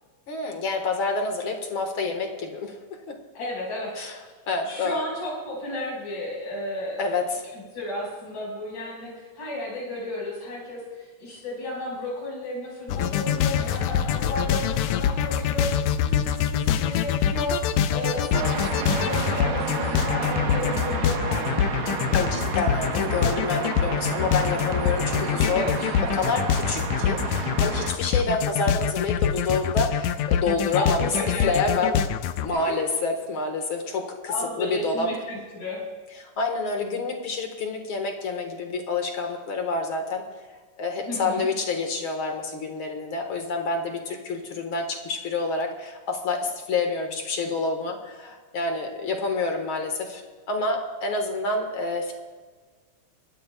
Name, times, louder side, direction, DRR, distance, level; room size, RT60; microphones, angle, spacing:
voice 1, 0.3-2.8 4.0-4.2 4.5-5.0 7.0-7.4 13.6-14.3 22.1-25.8 26.1-31.1 31.4-32.0 32.4-35.1 36.2-40.2 40.8-50.2 50.5-52.1, left 3 dB, 50° left, 4 dB, 1.9 m, -28 dB
voice 2, 3.3-3.9 4.6-7.1 7.5-17.6 17.9-21.8 25.2-25.9 30.8-31.8 32.7-32.8 34.3-35.8 41.0-41.5, left 1 dB, 70° left, -3 dB, 6.3 m, -33 dB
sound 1, 12.9-32.5, left 9 dB, 90° left, 1.5 m, -25 dB
sound 2, 18.3-27.9, right 5 dB, 60° right, 1.5 m, -31 dB
24.0 x 13.5 x 2.3 m, 1.4 s
omnidirectional pair, 3.7 m